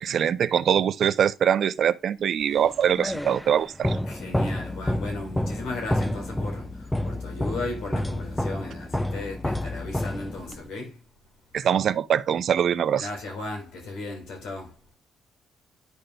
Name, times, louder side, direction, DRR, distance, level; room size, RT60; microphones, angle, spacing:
voice 1, 0.0-4.0 11.5-13.1, right 9 dB, 60° right, 0.5 m, -23 dB
sound 1, 2.6-10.7, left 1 dB, 5° left, 0.5 m, -29 dB
voice 2, 4.1-11.0 12.9-14.8, left 2 dB, 85° left, 3.8 m, -36 dB
11.5 x 5.1 x 2.2 m
cardioid pair, 90°, 0 cm